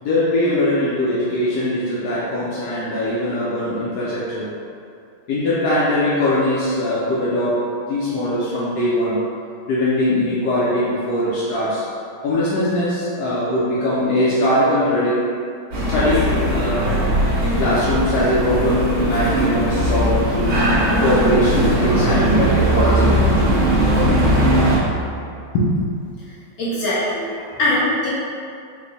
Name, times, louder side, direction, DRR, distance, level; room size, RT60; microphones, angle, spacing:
voice 1, 0.0-4.5 5.3-7.6 7.9-9.2 9.7-11.8 12.2-15.2 15.9-16.9 17.4-20.6 21.0-23.3 25.5-25.8, left 1 dB, 70° left, -8 dB, 1.0 m, -21 dB
sound 1, 15.7-24.8, right 1 dB, 60° right, 1.5 m, -18 dB
voice 2, 26.6-28.1, left 1 dB, 50° left, -10 dB, 1.6 m, -21 dB
4.8 x 2.2 x 4.0 m, 2.4 s
omnidirectional pair, 2.3 m